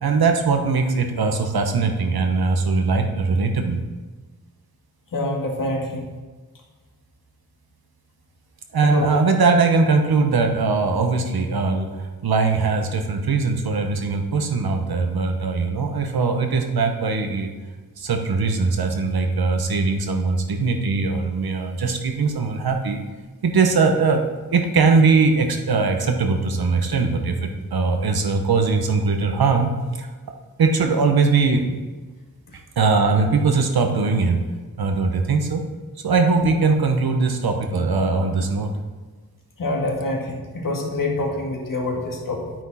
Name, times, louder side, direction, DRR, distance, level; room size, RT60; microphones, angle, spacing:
voice 1, 0.0-3.8 8.7-17.5 18.0-23.0 23.4-24.2 24.5-30.1 30.6-31.8 32.8-34.5 34.8-35.6 36.0-38.7, right 4 dB, 80° right, 4 dB, 1.2 m, -20 dB
voice 2, 5.1-6.1 8.8-9.2 32.5-32.6 36.4-36.5 39.6-42.5, left 2 dB, 60° left, -1 dB, 2.2 m, -26 dB
10.5 x 9.1 x 4.3 m, 1.3 s
wide cardioid pair, 170°, 36 cm